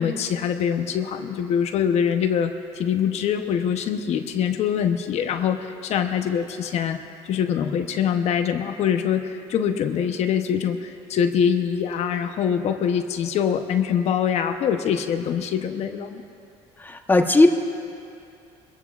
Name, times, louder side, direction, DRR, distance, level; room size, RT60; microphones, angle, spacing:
voice 1, 0.0-7.0 7.2-16.2, left 8 dB, 55° left, 6 dB, 0.9 m, -24 dB
voice 2, 16.8-17.5, left 2 dB, 15° left, 5 dB, 1.0 m, -17 dB
23.5 x 15.0 x 2.5 m, 2.5 s
cardioid pair, 105°, 13 cm